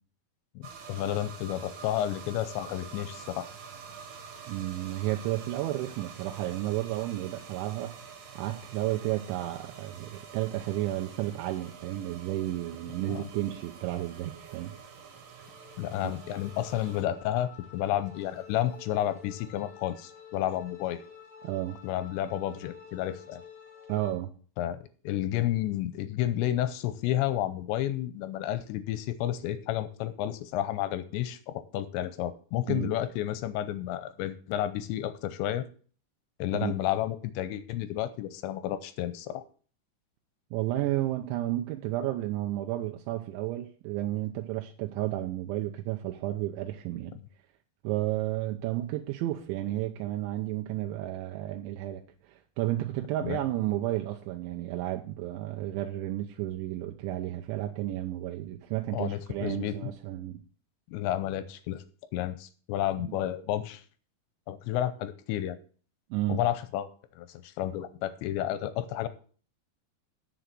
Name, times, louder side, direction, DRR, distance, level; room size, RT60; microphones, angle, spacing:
voice 1, 0.6-3.5 13.1-13.3 15.8-21.0 21.8-23.4 24.6-35.7 36.4-39.4 53.2-53.4 58.9-59.7 60.9-61.8 62.1-63.8 64.5-65.6 66.3-66.9 67.2-69.1, left 12 dB, 85° left, 12 dB, 2.9 m, -31 dB
sound 1, 0.6-17.0, right 6 dB, 55° right, 2.7 m, -47 dB
voice 2, 4.5-8.0 8.4-14.7 16.0-16.1 21.4-21.8 23.9-24.3 32.7-32.9 36.6-36.7 40.5-47.1 47.8-52.0 52.3-60.4 63.0-63.2 66.1-66.4, right 15 dB, 85° right, 3 dB, 3.1 m, -32 dB
sound 2, 15.2-24.1, left 7 dB, 45° left, 1.8 m, -51 dB
8.2 x 6.6 x 7.6 m, 0.42 s
omnidirectional pair, 5.3 m